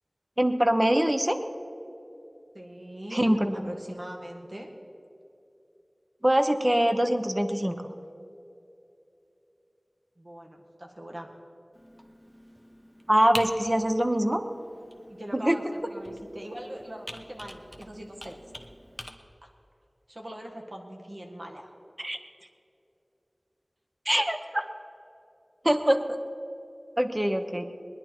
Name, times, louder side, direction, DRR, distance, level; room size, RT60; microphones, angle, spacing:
voice 1, 0.4-1.4 3.1-3.7 6.2-7.7 13.1-14.4 15.3-15.6 22.0-22.2 24.1-24.7 25.6-26.0 27.0-27.6, equal, 25° right, 7 dB, 0.9 m, -23 dB
voice 2, 2.5-4.7 10.2-11.3 15.1-18.4 19.4-19.5 20.1-21.7, equal, 60° right, 1 dB, 1.8 m, -41 dB
Computer keyboard, 11.7-19.1, equal, ahead, 1.1 m, -45 dB
21.0 x 10.5 x 4.5 m, 2.8 s
wide cardioid pair, 50°, 0 cm